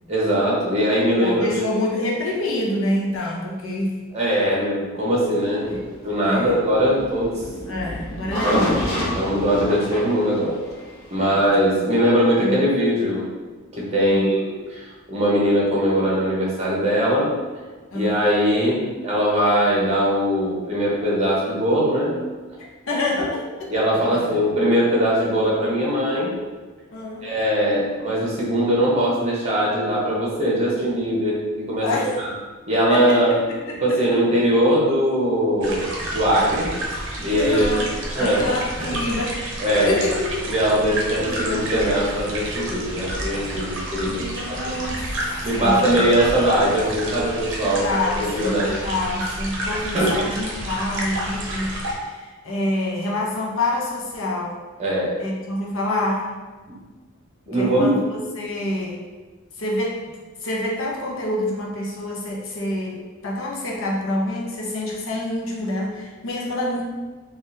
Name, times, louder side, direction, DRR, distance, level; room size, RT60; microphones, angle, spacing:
voice 1, 0.1-1.6 4.1-7.4 8.4-8.7 9.1-10.6 11.1-13.2 13.7-17.3 17.9-22.1 23.7-26.3 27.2-31.9 32.2-32.3 32.7-33.4 33.8-36.7 37.2-37.7 38.1-38.5 38.8-38.9 39.6-40.0 40.5-44.6 45.4-48.8 49.9-50.2 54.8-55.1 57.5-58.0, equal, 30° right, -5 dB, 0.9 m, -21 dB
voice 2, 1.2-4.0 5.7-5.8 6.2-6.5 7.7-8.8 11.2-11.4 12.4-12.6 14.0-14.3 17.9-18.1 22.9-24.3 26.9-27.3 31.8-32.2 32.9-34.2 37.2-39.4 39.7-40.5 41.2-41.6 44.1-45.0 45.5-46.1 47.6-54.6 55.2-56.3 57.4-59.0 59.6-66.8, left 1 dB, 70° left, -3 dB, 0.7 m, -27 dB
sound 1, 5.6-11.5, left 1 dB, 20° left, 1.0 m, -29 dB
sound 2, 35.6-51.9, right 1 dB, 60° right, 0.7 m, -30 dB
3.5 x 2.4 x 2.7 m, 1.3 s
head